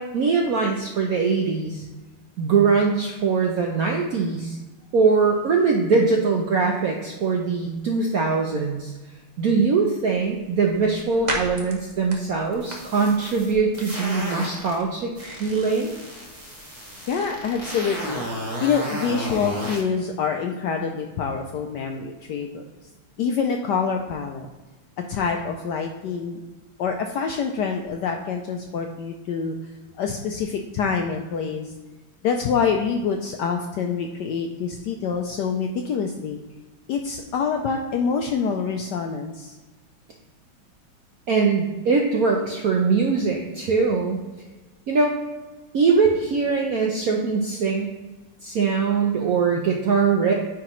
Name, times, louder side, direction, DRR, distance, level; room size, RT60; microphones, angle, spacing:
voice 1, 0.0-1.8 2.4-4.6 4.9-8.9 9.4-16.0 41.3-44.2 44.9-45.2 45.7-47.9 48.4-50.3, right 4 dB, 75° right, 1 dB, 0.8 m, -22 dB
sound 1, 10.0-18.7, right 2 dB, 50° right, 0.5 m, -39 dB
sound 2, 12.5-14.7 15.1-19.8, right 1 dB, 20° right, 1.3 m, -33 dB
voice 2, 17.1-18.2 18.6-22.6 23.2-24.5 25.1-26.4 26.8-29.5 30.0-31.7 32.2-36.4 36.9-39.6, left 6 dB, 75° left, 3 dB, 1.0 m, -26 dB
9.5 x 4.8 x 3.1 m, 1.2 s
omnidirectional pair, 2.3 m